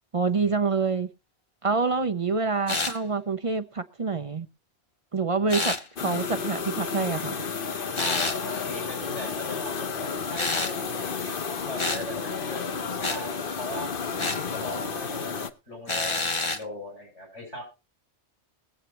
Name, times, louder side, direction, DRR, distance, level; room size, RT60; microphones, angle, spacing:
voice 1, 0.1-1.1 1.6-4.5 5.1-7.3, right 4 dB, 35° right, 0.6 m, -26 dB
sound 1, 2.7-3.0 5.5-5.8 7.9-8.4 10.4-10.8 11.8-12.0 13.0-13.2 14.2-14.4 15.9-16.6, left 3 dB, 25° left, 1.0 m, -28 dB
sound 2, 6.0-15.5, left 5 dB, 55° left, 1.0 m, -32 dB
voice 2, 7.9-13.9 14.3-17.6, left 1 dB, 85° left, 8.6 m, -39 dB
22.0 x 8.1 x 3.1 m
omnidirectional pair, 1.2 m